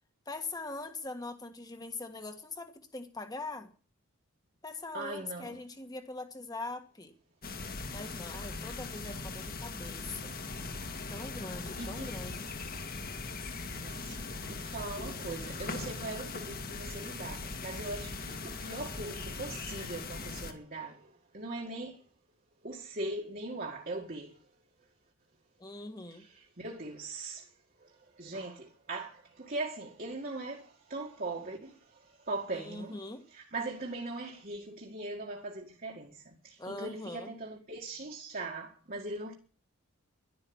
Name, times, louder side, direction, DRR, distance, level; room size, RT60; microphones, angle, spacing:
voice 1, 0.3-3.7 4.6-7.1 7.9-10.3 11.1-12.6 25.6-26.3 32.5-33.2 36.6-37.3, left 2 dB, 15° left, 1.6 m, -42 dB
voice 2, 4.9-5.6 10.5-10.7 11.8-12.2 13.8-22.0 22.6-24.4 26.1-27.5 27.8-33.0 33.3-39.3, right 2 dB, 40° right, 1.9 m, -40 dB
sound 1, 7.4-20.5, left 3 dB, 40° left, 1.9 m, -40 dB
12.0 x 11.0 x 8.7 m
head